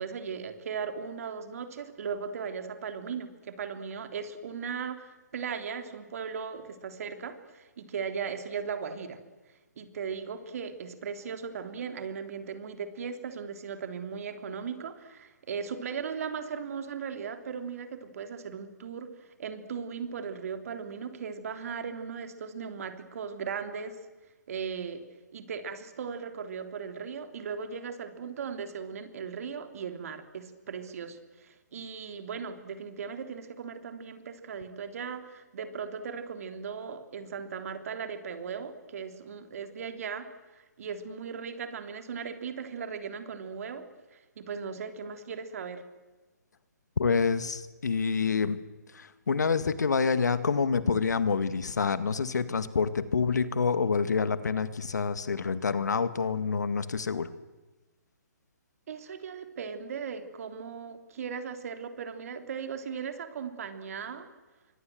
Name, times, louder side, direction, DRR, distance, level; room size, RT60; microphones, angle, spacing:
voice 1, 0.0-9.2 9.8-24.0 24.5-25.0 25.3-40.3 40.8-43.9 44.1-45.8 58.9-64.3, right 6 dB, 55° right, 8 dB, 3.4 m, -37 dB
voice 2, 47.0-48.6 48.9-57.3, left 5 dB, 75° left, 13 dB, 2.0 m, -27 dB
27.5 x 24.0 x 7.9 m, 1.2 s
hypercardioid pair, 140°, 9 cm